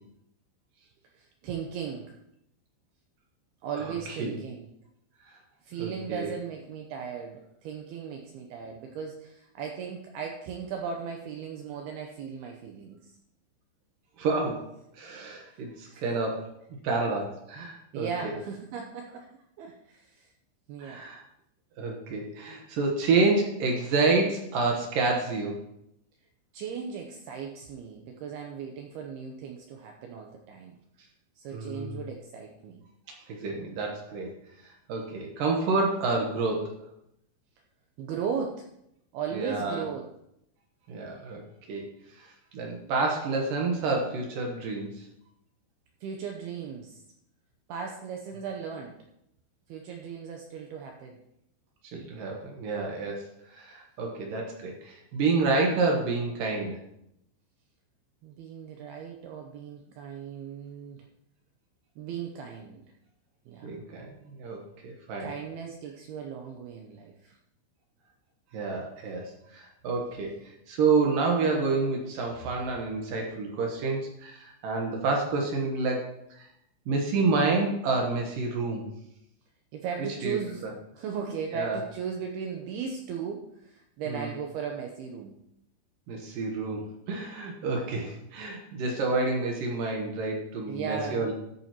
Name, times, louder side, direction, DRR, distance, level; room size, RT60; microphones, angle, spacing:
voice 1, 1.2-2.2 3.6-4.7 5.6-13.1 15.5-16.0 17.9-19.3 19.6-20.3 20.7-21.0 26.5-30.8 31.4-32.8 38.0-38.7 39.1-40.1 46.0-47.0 47.7-49.0 49.7-51.2 58.2-61.0 62.0-62.8 63.5-63.7 65.2-67.4 79.7-80.6 80.9-85.3 87.7-88.1 90.7-91.3, right 6 dB, 90° right, 2 dB, 2.2 m, -37 dB
voice 2, 5.8-6.3 14.2-16.5 16.8-18.3 20.8-21.2 21.8-25.6 31.5-32.0 33.3-34.3 34.6-36.8 39.3-39.9 40.9-41.4 41.7-41.9 42.2-45.1 51.9-56.8 63.6-65.3 68.5-76.4 76.9-78.9 80.2-80.4 81.5-81.8 84.1-84.3 86.1-91.3, right 3 dB, 75° right, 1 dB, 2.1 m, -29 dB
14.0 x 8.6 x 3.0 m, 0.78 s
omnidirectional pair, 5.5 m